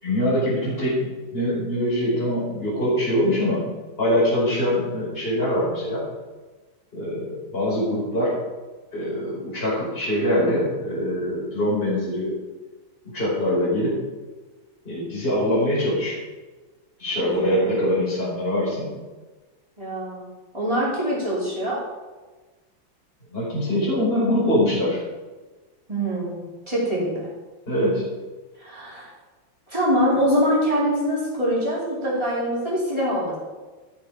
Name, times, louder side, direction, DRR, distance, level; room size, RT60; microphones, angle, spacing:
voice 1, 0.0-3.7 4.0-6.0 6.9-8.4 8.9-12.4 13.0-14.0 14.8-16.2 17.0-18.9 23.3-25.0 27.7-28.0, left 1 dB, 30° left, -8 dB, 5.3 m, -23 dB
voice 2, 17.1-17.7 19.8-20.3 20.5-21.9 25.9-27.3 28.6-29.1 29.7-33.4, equal, 15° right, -7 dB, 4.6 m, -24 dB
14.5 x 9.1 x 5.1 m, 1.3 s
omnidirectional pair, 2.2 m